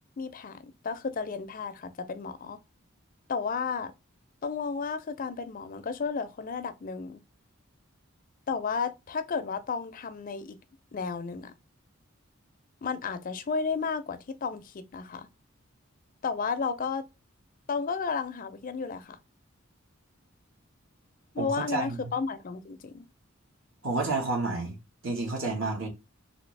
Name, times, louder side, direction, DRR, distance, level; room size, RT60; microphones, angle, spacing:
voice 1, 0.2-2.6 3.3-3.9 4.4-7.2 8.5-10.6 10.9-11.5 12.8-15.3 16.2-17.1 17.7-19.2 21.3-23.0, left 5 dB, 40° left, 0.4 m, -33 dB
voice 2, 21.4-22.1 23.8-24.8 25.0-25.9, right 3 dB, 70° right, 1.4 m, -30 dB
3.4 x 2.7 x 3.1 m
head